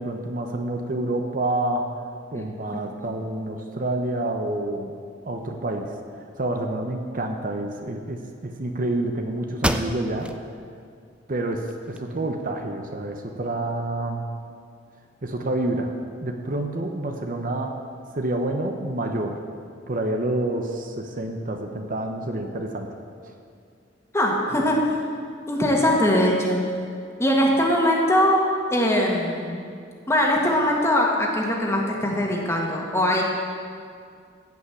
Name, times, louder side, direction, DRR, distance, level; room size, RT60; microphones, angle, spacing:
voice 1, 0.0-1.9 2.3-4.9 5.2-5.9 6.4-10.3 11.3-14.3 15.2-15.9 16.2-17.8 18.1-19.4 19.9-22.9, right 1 dB, 45° right, 4 dB, 0.9 m, -28 dB
sound 1, 9.6-10.4 10.9-11.0 11.5-12.4, right 1 dB, 5° right, 0.5 m, -29 dB
voice 2, 24.1-24.8 25.5-26.6 27.2-29.7 30.1-33.2, left 1 dB, 15° left, -2 dB, 1.8 m, -21 dB
15.5 x 5.7 x 8.4 m, 2.2 s
head